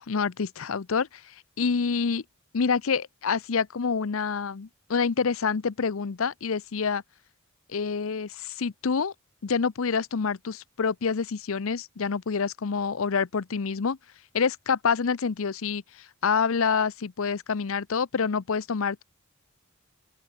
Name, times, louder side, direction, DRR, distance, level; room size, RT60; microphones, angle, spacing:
voice 1, 0.0-2.2 2.5-7.0 7.7-9.1 9.4-14.0 14.3-19.0, left 5 dB, 70° left, 0.6 m, -27 dB
open air
head